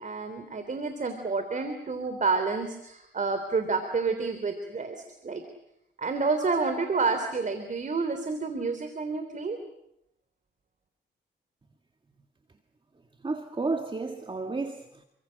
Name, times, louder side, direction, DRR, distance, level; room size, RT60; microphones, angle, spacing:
voice 1, 0.0-5.4 6.0-9.6, right 4 dB, 45° right, 3.5 m, -29 dB
voice 2, 13.2-15.1, right 3 dB, 25° right, 2.0 m, -32 dB
29.0 x 24.5 x 6.6 m
cardioid pair, 75°, 19 cm